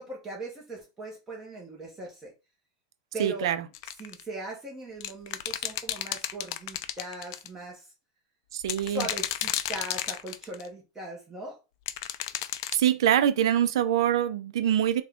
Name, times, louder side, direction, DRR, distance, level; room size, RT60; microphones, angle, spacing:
voice 1, 0.0-2.3 3.1-3.5 4.0-7.9 8.9-11.6, right 1 dB, 15° right, 1.0 m, -39 dB
voice 2, 3.2-3.6 8.5-9.1 12.7-15.0, right 10 dB, 75° right, 0.5 m, -24 dB
sound 1, 3.7-4.2 5.0-7.5 8.6-10.7 11.9-12.8, left 12 dB, 60° left, 0.3 m, -32 dB
3.6 x 2.3 x 3.5 m
supercardioid pair, 140°, 3 cm